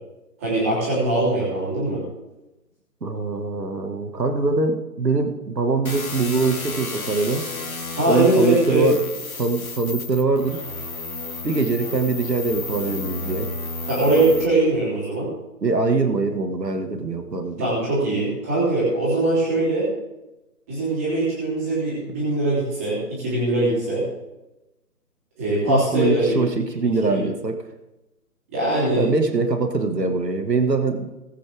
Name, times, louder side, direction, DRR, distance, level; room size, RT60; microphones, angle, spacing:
voice 1, 0.4-2.0 7.9-8.9 13.9-15.3 17.6-19.8 20.7-24.0 25.4-26.4 26.8-27.2 28.5-29.0, right 2 dB, 10° right, -8 dB, 3.3 m, -21 dB
voice 2, 3.0-7.5 8.1-9.0 9.4-10.6 11.4-13.5 15.6-17.7 25.7-27.6 29.0-31.1, right 3 dB, 80° right, 6 dB, 2.0 m, -23 dB
sound 1, 5.9-14.5, left 3 dB, 55° left, 2.2 m, -32 dB
20.0 x 8.4 x 3.6 m, 1.0 s
figure-of-eight pair, 170°, 48 cm